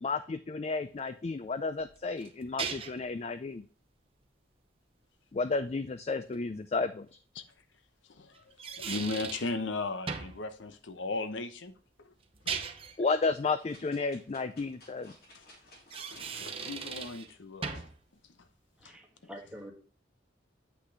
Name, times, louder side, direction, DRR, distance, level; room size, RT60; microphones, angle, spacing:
voice 1, 0.0-3.6 5.3-7.1 13.0-15.1, left 4 dB, 35° left, 11 dB, 0.4 m, -32 dB
sound 1, 1.8-3.1 6.3-6.4 8.3-9.5 10.1-10.4 12.2-13.0 15.7-17.3 17.6-18.0, right 6 dB, 30° right, 0.8 m, -38 dB
voice 2, 8.1-11.7 12.0-12.1 12.4-12.5 15.3-15.4 16.1-17.9 18.8-18.9, left 3 dB, 80° left, 11 dB, 0.8 m, -37 dB
sound 2, 13.7-17.3 17.9-18.0, left 2 dB, 50° left, 3.1 m, -56 dB
voice 3, 18.8-19.7, equal, 5° right, 0 dB, 1.4 m, -46 dB
8.1 x 6.0 x 3.3 m, 0.41 s
head